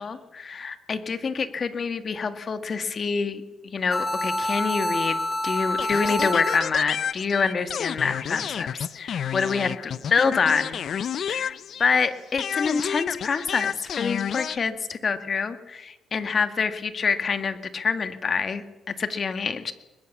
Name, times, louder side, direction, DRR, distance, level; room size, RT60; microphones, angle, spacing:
voice 1, 0.0-10.8 11.3-19.7, left 5 dB, 45° left, 10 dB, 1.8 m, -26 dB
Techno melody, 3.9-6.9, left 1 dB, 15° left, 2.9 m, -27 dB
sound 1, 5.8-12.0 12.4-14.6, left 8 dB, 60° left, 0.6 m, -30 dB
21.5 x 21.0 x 7.2 m, 1.1 s
cardioid pair, 90°, 0 cm